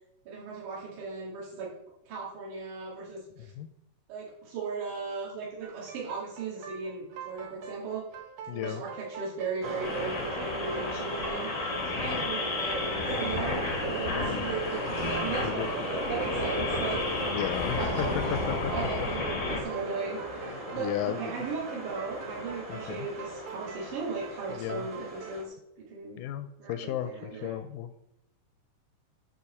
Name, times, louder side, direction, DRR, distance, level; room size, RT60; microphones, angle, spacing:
voice 1, 0.3-1.7 2.1-3.5 4.1-8.0 8.5-13.6 13.9-26.2 26.6-27.5, right 5 dB, 65° right, -7 dB, 3.5 m, -37 dB
sound 1, 5.6-25.4, right 6 dB, 85° right, 3.0 m, -45 dB
voice 2, 8.5-8.8 11.9-12.3 14.1-14.5 15.4-15.7 17.3-19.1 20.7-21.3 22.7-23.1 24.5-24.9 26.2-28.1, left 12 dB, 80° left, 10 dB, 1.9 m, -35 dB
sound 2, 9.6-25.4, right 1 dB, 25° right, 2.0 m, -36 dB
sound 3, 9.8-19.6, left 3 dB, 65° left, 0.7 m, -33 dB
10.0 x 4.0 x 6.8 m, 0.81 s
omnidirectional pair, 3.9 m